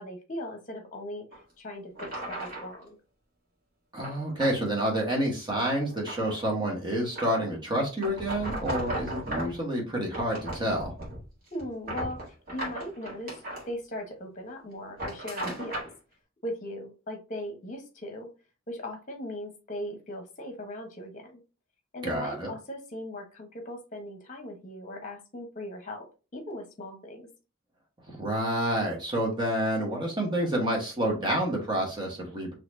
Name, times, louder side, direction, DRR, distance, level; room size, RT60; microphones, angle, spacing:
voice 1, 0.0-3.0 11.5-13.3 13.7-15.8 16.4-18.3 18.7-21.4 21.9-26.1 26.3-27.3, left 1 dB, 35° left, 3 dB, 1.0 m, -39 dB
sound 1, 1.3-1.4 1.9-2.7 4.0-4.5 4.9-5.2 5.6-6.4 7.1-7.5 8.0-9.6 10.1-11.3 11.6-13.6 14.8-15.9, right 1 dB, 40° right, 1.7 m, -36 dB
voice 2, 3.9-10.9 22.0-22.5 28.2-32.5, right 1 dB, 20° right, -2 dB, 1.2 m, -28 dB
4.1 x 3.0 x 2.6 m, 0.32 s
head